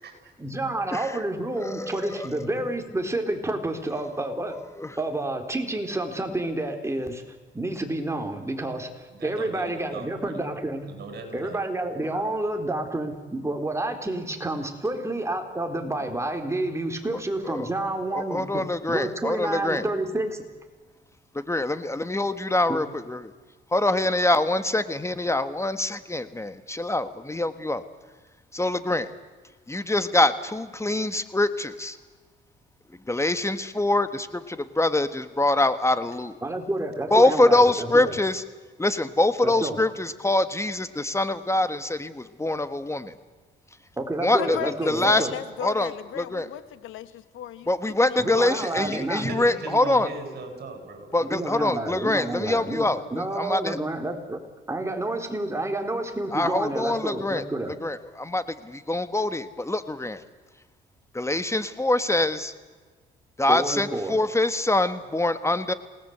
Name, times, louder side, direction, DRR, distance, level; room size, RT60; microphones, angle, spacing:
voice 1, 0.4-4.6 5.0-7.2 7.5-10.9 11.3-20.4 22.7-22.8 36.4-38.2 39.4-39.8 44.0-45.3 48.2-49.3 51.2-54.4 54.7-57.7 63.5-64.2, right 2 dB, 15° right, 4.0 m, -29 dB
voice 2, 0.9-1.2 1.6-2.3 4.8-5.0 17.4-17.7 18.1-19.8 21.5-23.2 23.7-27.8 28.5-29.1 29.7-32.0 33.1-36.4 37.1-38.4 38.8-43.1 44.2-44.6 44.8-45.3 45.6-46.5 47.7-50.1 51.1-53.8 56.3-57.4 57.8-60.2 61.1-62.5 63.4-65.7, left 2 dB, 15° left, 1.5 m, -24 dB
voice 3, 9.1-10.3 10.9-11.6 48.6-51.3, right 3 dB, 55° right, 7.8 m, -38 dB
voice 4, 44.4-47.7 48.0-48.7, left 11 dB, 85° left, 1.4 m, -36 dB
27.5 x 19.0 x 8.1 m
cardioid pair, 90°, 20 cm